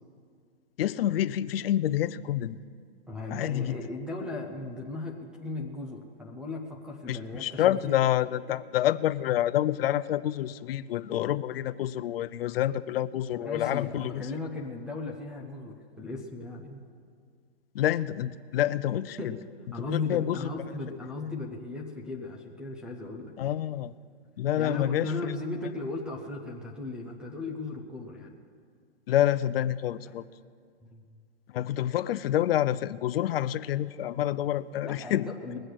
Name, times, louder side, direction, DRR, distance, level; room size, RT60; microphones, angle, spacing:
voice 1, 0.8-2.6 3.3-3.8 7.1-14.3 17.7-19.4 19.9-20.5 23.4-23.9 24.4-25.4 29.1-30.2 31.5-35.3, left 12 dB, 60° left, 16 dB, 0.6 m, -28 dB
voice 2, 3.1-8.0 13.4-16.8 19.2-19.3 19.7-23.3 24.6-28.4 30.9-31.0 34.8-35.6, left 3 dB, 5° right, 1 dB, 0.4 m, -36 dB
20.5 x 7.8 x 6.4 m, 2.1 s
hypercardioid pair, 145°, 33 cm